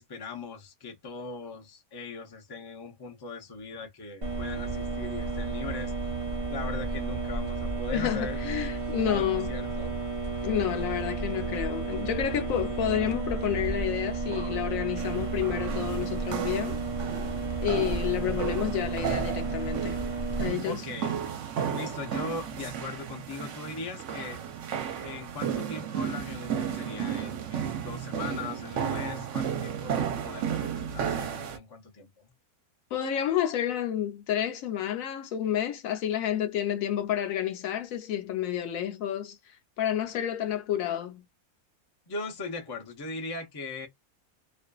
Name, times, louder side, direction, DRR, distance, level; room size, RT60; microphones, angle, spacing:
voice 1, 0.0-6.1 6.5-8.4 9.1-10.0 20.6-21.2 21.7-24.4 25.0-32.3 42.1-43.9, left 3 dB, 40° left, 0.3 m, -39 dB
sound 1, 4.2-20.5, right 3 dB, 35° right, 0.6 m, -32 dB
voice 2, 7.9-9.5 10.4-16.8 17.6-20.0 20.4-20.8 32.9-41.3, left 10 dB, 70° left, 1.0 m, -30 dB
sound 2, 15.0-31.6, right 8 dB, 65° right, 0.9 m, -34 dB
2.5 x 2.4 x 2.2 m
omnidirectional pair, 1.5 m